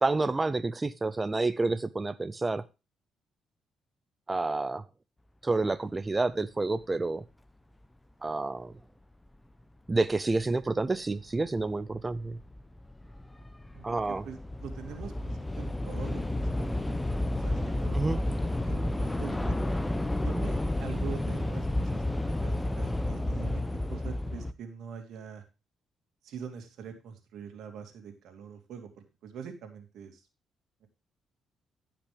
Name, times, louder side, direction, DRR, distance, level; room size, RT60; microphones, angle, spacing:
voice 1, 0.0-2.6 4.3-4.8 5.4-7.2 8.2-8.7 9.9-12.4 13.8-14.2 17.9-18.2, right 3 dB, 20° right, 14 dB, 0.5 m, -29 dB
Train / Subway metro underground, 10.5-10.6 11.4-11.7 12.0-24.5, left 1 dB, 10° left, 0.9 m, -31 dB
voice 2, 13.7-16.2 16.6-18.0 18.6-19.6 20.2-23.6 23.9-25.4 26.2-28.9 29.2-30.2 30.8-30.9, right 7 dB, 80° right, 5 dB, 2.7 m, -44 dB
15.5 x 5.9 x 3.4 m, 0.30 s
cardioid pair, 90°, 0 cm